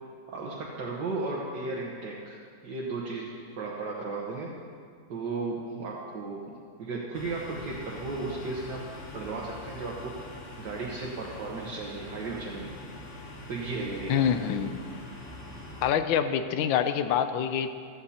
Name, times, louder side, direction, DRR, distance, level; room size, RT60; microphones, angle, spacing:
voice 1, 0.3-2.4 2.6-4.5 5.1-6.5 6.8-8.8 9.1-10.3 10.6-12.9 13.5-14.3, right 3 dB, 65° right, -4 dB, 1.8 m, -35 dB
sound 1, 7.1-15.9, left 1 dB, 45° left, 1.3 m, -44 dB
voice 2, 14.1-14.8 15.8-17.7, left 8 dB, 90° left, 9 dB, 1.4 m, -26 dB
15.5 x 13.5 x 2.9 m, 2.2 s
omnidirectional pair, 2.1 m